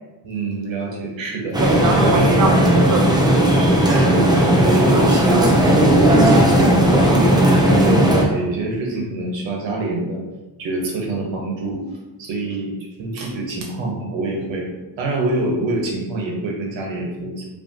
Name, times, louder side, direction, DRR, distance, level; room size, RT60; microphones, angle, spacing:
voice 1, 0.2-1.6 2.2-2.4 3.9-10.2 10.6-11.8 12.2-12.7 13.0-14.7 15.0-17.5, right 2 dB, 75° right, -1 dB, 1.5 m, -26 dB
sound 1, 1.5-8.2, right 1 dB, 10° right, 0.8 m, -15 dB
voice 2, 1.6-3.5 5.3-5.5, right 3 dB, 40° right, 3 dB, 0.8 m, -24 dB
5.2 x 3.2 x 3.0 m, 1.1 s
cardioid pair, 115°, 45 cm